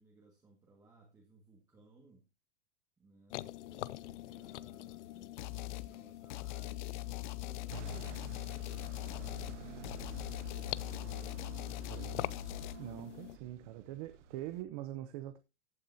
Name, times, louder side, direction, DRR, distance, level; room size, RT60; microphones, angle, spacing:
voice 1, 0.0-2.3 3.0-11.7 12.8-14.0, right 3 dB, 10° right, 1.7 m, -63 dB
sound 1, 3.3-13.4, left 16 dB, 80° left, 0.6 m, -46 dB
sound 2, 5.4-5.9 6.3-12.8, left 18 dB, 45° left, 0.5 m, -41 dB
sound 3, 7.7-14.6, right 9 dB, 80° right, 1.3 m, -50 dB
voice 2, 11.9-12.4 12.8-15.4, right 13 dB, 35° right, 0.7 m, -43 dB
14.5 x 8.7 x 2.7 m
supercardioid pair, 175°, 35 cm